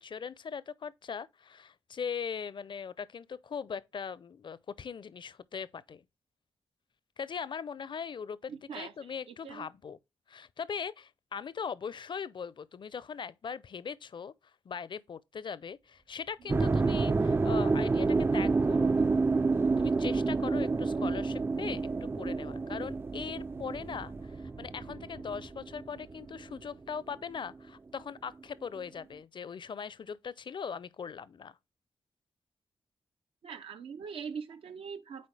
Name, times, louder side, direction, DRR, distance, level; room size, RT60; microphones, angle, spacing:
voice 1, 0.0-6.0 7.2-10.0 10.3-14.3 14.7-19.1 19.8-31.6, left 6 dB, 60° left, 0.5 m, -40 dB
voice 2, 8.5-9.7 16.4-16.5 33.4-35.3, right 6 dB, 85° right, 0.7 m, -42 dB
sound 1, 15.9-28.0, right 3 dB, 60° right, 2.2 m, -54 dB
sound 2, 16.5-26.7, right 3 dB, 25° right, 0.3 m, -29 dB
8.4 x 4.2 x 3.3 m
supercardioid pair, 45°, 9 cm